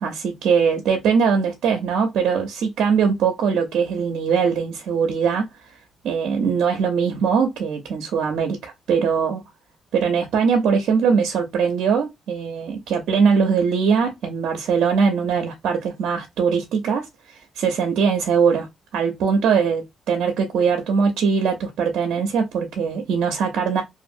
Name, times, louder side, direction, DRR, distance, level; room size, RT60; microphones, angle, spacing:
voice 1, 0.0-5.5 6.0-9.4 9.9-23.8, right 6 dB, 80° right, 0.6 m, -21 dB
2.5 x 2.5 x 2.6 m
cardioid pair, 80°, 0 cm